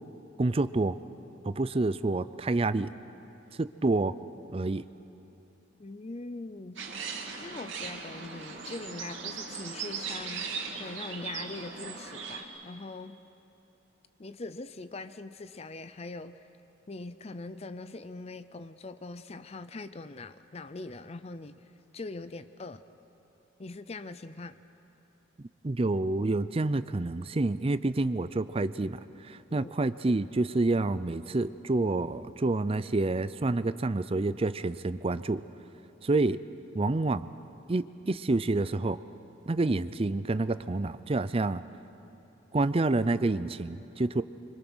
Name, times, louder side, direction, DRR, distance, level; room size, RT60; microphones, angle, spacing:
voice 1, 0.4-1.0 1.4-2.9 3.6-4.1 4.5-4.9 25.4-35.4 36.0-36.4 36.7-37.3 37.7-39.0 39.5-41.6 42.5-44.2, right 2 dB, 30° right, 14 dB, 0.5 m, -28 dB
voice 2, 5.8-6.8 7.4-10.5 10.8-13.2 14.2-16.5 16.9-21.6 21.9-22.8 23.6-24.6 29.5-29.7, left 3 dB, 35° left, 12 dB, 0.5 m, -42 dB
sound 1, 6.8-12.4, right 5 dB, 85° right, 2.5 m, -38 dB
26.0 x 24.5 x 6.2 m, 2.9 s
head